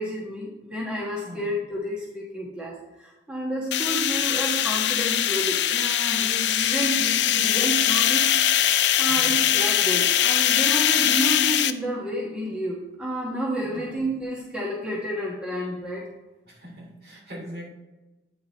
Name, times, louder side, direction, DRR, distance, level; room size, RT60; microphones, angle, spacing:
voice 1, 0.0-8.3 8.6-16.0, equal, 5° right, -5 dB, 1.3 m, -30 dB
sound 1, 3.7-11.7, left 11 dB, 85° left, 0.4 m, -22 dB
voice 2, 13.6-14.0 16.4-17.7, equal, 60° right, -3 dB, 2.6 m, -41 dB
8.8 x 5.0 x 4.0 m, 1.1 s
head